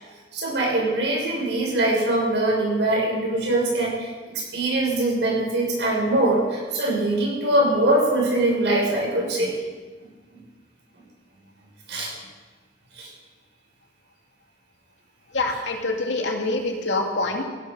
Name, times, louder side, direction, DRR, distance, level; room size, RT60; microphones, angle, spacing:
voice 1, 0.3-4.1 4.3-9.5 11.9-12.1 13.0-13.1, right 1 dB, 75° right, -3 dB, 6.4 m, -22 dB
voice 2, 15.3-17.4, left 2 dB, 90° left, 2 dB, 2.4 m, -25 dB
16.0 x 12.5 x 5.4 m, 1.3 s
head